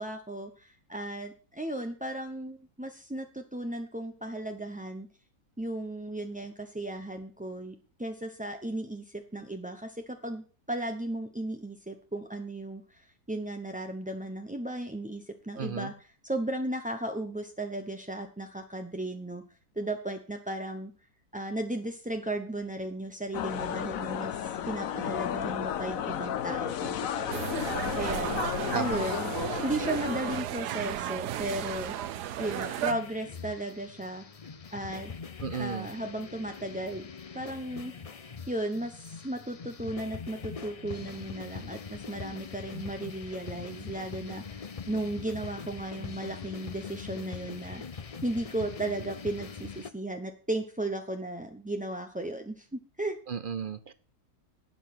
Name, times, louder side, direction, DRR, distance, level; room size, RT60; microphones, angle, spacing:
voice 1, 0.0-5.1 5.6-19.4 19.8-20.9 21.3-28.5 28.7-29.3 29.6-31.9 32.4-34.2 34.7-35.1 35.5-37.1 37.3-37.9 38.5-47.8 48.2-53.2, right 1 dB, 10° right, 4 dB, 0.5 m, -35 dB
voice 2, 15.6-15.9 28.7-29.0 35.4-35.9 53.3-53.9, right 6 dB, 60° right, 14 dB, 0.5 m, -34 dB
sound 1, 23.3-30.4, left 9 dB, 65° left, 1.1 m, -33 dB
sound 2, 27.3-32.9, right 11 dB, 85° right, 1.3 m, -34 dB
sound 3, 32.4-49.9, left 5 dB, 45° left, 0.4 m, -42 dB
12.0 x 8.5 x 5.9 m, 0.38 s
omnidirectional pair, 1.7 m